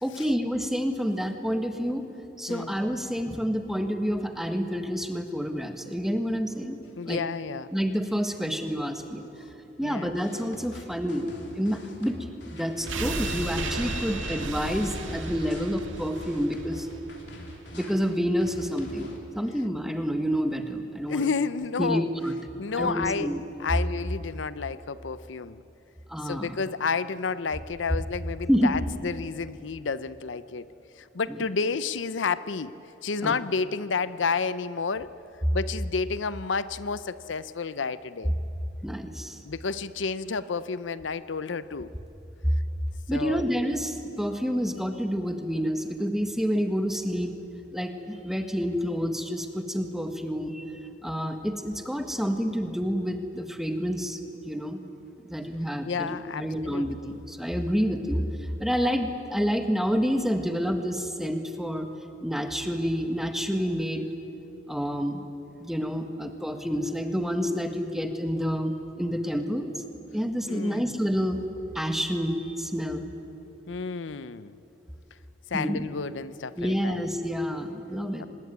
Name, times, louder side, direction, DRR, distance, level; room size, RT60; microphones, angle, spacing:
voice 1, 0.0-2.1 2.4-6.8 7.0-7.2 7.7-9.2 9.8-16.9 17.7-21.3 21.8-22.3 22.7-23.4 26.1-26.6 28.5-28.7 31.3-31.4 33.2-33.3 38.8-39.4 43.1-47.3 47.7-50.7 51.0-54.8 55.2-61.9 62.2-64.1 64.7-65.2 65.6-69.8 70.1-71.4 71.7-73.0 75.5-75.8 76.6-78.2, equal, ahead, 6 dB, 1.6 m, -28 dB
voice 2, 7.0-7.7 9.8-10.1 20.9-22.1 22.6-23.3 23.6-25.6 26.2-30.7 31.0-32.7 33.0-35.1 35.5-38.3 39.4-41.9 43.1-43.5 55.8-57.1 70.5-70.9 73.7-74.6 75.5-77.0 78.2-78.3, left 5 dB, 80° left, 15 dB, 0.7 m, -30 dB
sound 1, 10.2-19.2, left 1 dB, 65° left, 3.2 m, -45 dB
sound 2, 12.9-17.8 18.1-18.2, right 3 dB, 90° right, 2.1 m, -35 dB
25.0 x 20.0 x 9.5 m, 3.0 s
head